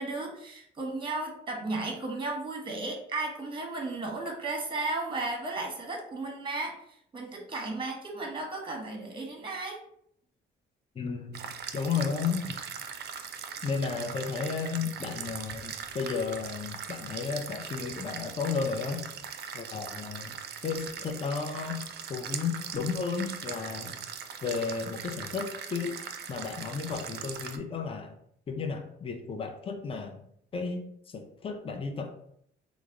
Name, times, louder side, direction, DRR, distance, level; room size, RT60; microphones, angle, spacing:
voice 1, 0.0-6.8 7.1-9.8, right 2 dB, 25° right, 1 dB, 1.0 m, -34 dB
voice 2, 11.0-11.5 11.7-12.4 13.6-19.1 19.5-20.4 20.6-21.8 22.1-24.0 24.4-26.0 26.3-28.1 28.5-30.2 30.5-32.1, left 5 dB, 30° left, 4 dB, 0.5 m, -33 dB
sound 1, 11.3-27.6, right 7 dB, 55° right, 0.4 m, -40 dB
3.4 x 2.0 x 3.6 m, 0.70 s
cardioid pair, 90°, 20 cm